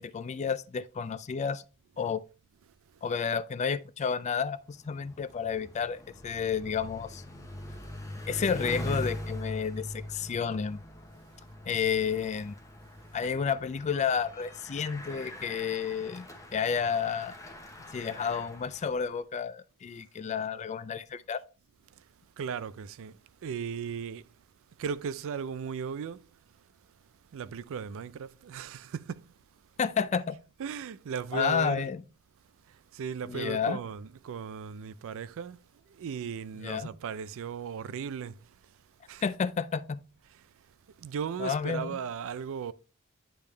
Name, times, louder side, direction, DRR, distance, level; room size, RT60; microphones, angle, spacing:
voice 1, 0.0-1.6 2.0-2.2 3.0-7.2 8.3-10.8 11.6-12.5 13.1-17.3 17.9-21.4 29.8-30.4 31.3-32.0 33.2-33.8 36.6-36.9 39.2-40.0 41.4-42.0, left 6 dB, 30° left, 0.3 m, -31 dB
Bicycle, 4.5-19.1, left 1 dB, 15° left, 0.9 m, -42 dB
voice 2, 22.4-24.3 24.8-26.3 27.3-29.3 30.6-31.9 32.7-35.6 35.9-38.5 39.1-39.2 41.0-42.7, right 6 dB, 65° right, 0.4 m, -37 dB
10.0 x 3.5 x 3.2 m
head